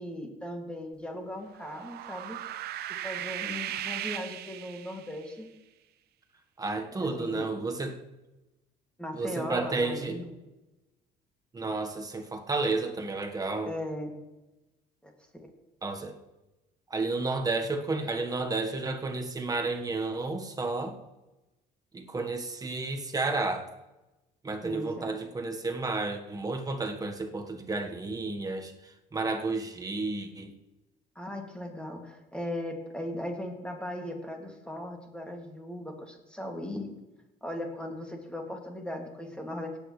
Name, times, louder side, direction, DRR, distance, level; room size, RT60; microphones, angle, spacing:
voice 1, 0.0-2.4 2.9-5.5 6.9-7.5 9.0-10.3 13.7-14.1 15.0-15.5 24.6-25.2 31.2-36.9 37.4-39.7, left 1 dB, 5° left, 2 dB, 2.3 m, -38 dB
sound 1, 1.5-5.2, right 12 dB, 70° right, 0.7 m, -37 dB
voice 2, 6.6-8.0 9.1-10.2 11.5-13.7 15.8-16.2 16.9-21.0 21.9-23.7 24.4-28.7 29.1-30.5, right 3 dB, 20° right, 4 dB, 1.3 m, -31 dB
18.0 x 8.7 x 3.2 m, 1.0 s
cardioid pair, 110°, 17 cm